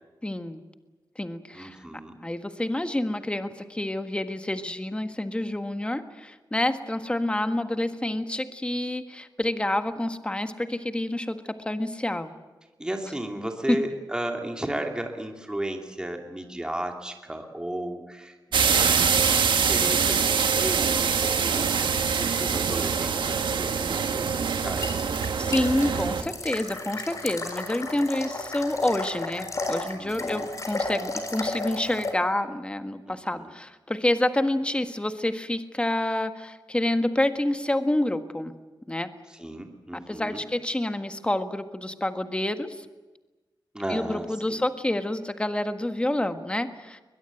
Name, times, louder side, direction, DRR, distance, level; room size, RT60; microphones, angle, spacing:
voice 1, 0.2-0.6 1.1-1.8 2.2-12.3 13.4-13.8 25.4-38.5 38.9-39.1 39.9-42.8 43.9-47.0, left 1 dB, 15° left, 8 dB, 1.6 m, -28 dB
voice 2, 1.5-2.2 12.8-25.0 30.0-30.5 33.1-33.5 39.4-40.4 43.7-44.6, right 1 dB, 10° right, 3 dB, 2.6 m, -34 dB
sound 1, 18.5-26.2, right 6 dB, 80° right, 1.5 m, -24 dB
sound 2, 24.3-32.1, left 2 dB, 40° left, 4.1 m, -33 dB
22.0 x 21.5 x 9.1 m, 1.2 s
wide cardioid pair, 100°, 8 cm